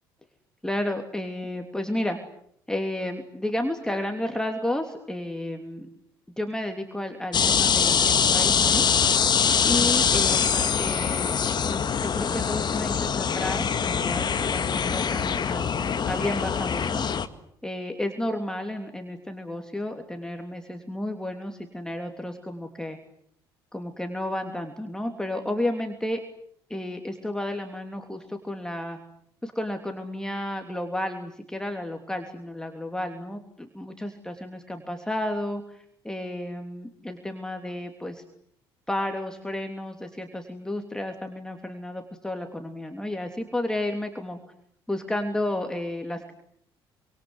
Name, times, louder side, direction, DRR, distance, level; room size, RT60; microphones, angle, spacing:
voice 1, 0.6-2.2 2.7-5.9 6.4-8.9 9.7-11.4 11.6-17.0 17.6-23.0 23.7-26.2 26.7-29.0 29.4-38.2 38.9-44.4 44.9-46.3, left 1 dB, 5° left, 4 dB, 3.1 m, -32 dB
sound 1, 7.3-17.3, left 7 dB, 35° left, 1.9 m, -23 dB
28.5 x 26.0 x 8.0 m, 0.68 s
figure-of-eight pair, 50°, 12 cm